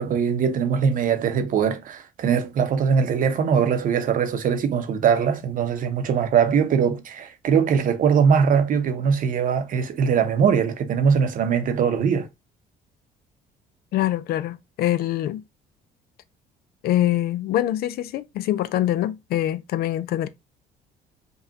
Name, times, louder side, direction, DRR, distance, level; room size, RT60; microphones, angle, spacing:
voice 1, 0.0-12.3, right 7 dB, 55° right, 0.8 m, -21 dB
voice 2, 13.9-15.4 16.8-20.3, left 13 dB, 65° left, 0.4 m, -24 dB
5.3 x 2.4 x 2.8 m
cardioid pair, 110°, 17 cm